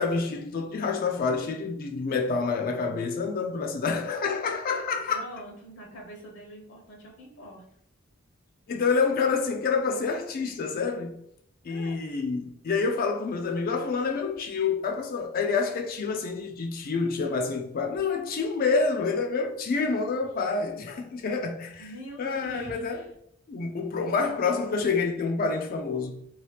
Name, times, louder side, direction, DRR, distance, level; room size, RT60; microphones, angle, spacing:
voice 1, 0.0-5.2 8.7-11.2 11.6-21.9 22.2-23.0 23.5-26.3, left 4 dB, 45° left, 0.4 m, -28 dB
voice 2, 5.1-7.6 11.7-12.0 21.8-23.1, equal, 65° left, 0.8 m, -44 dB
2.8 x 2.3 x 3.2 m
head